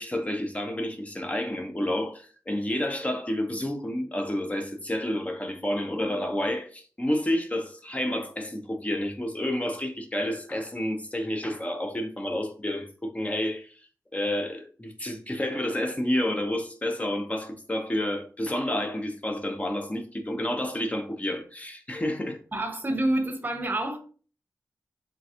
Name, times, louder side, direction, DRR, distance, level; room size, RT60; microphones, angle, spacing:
voice 1, 0.0-13.7 14.1-22.4, left 1 dB, 20° left, 0.7 m, -30 dB
voice 2, 22.5-24.0, right 1 dB, 30° right, 0.8 m, -27 dB
3.8 x 3.2 x 2.8 m
wide cardioid pair, 85°, 7 cm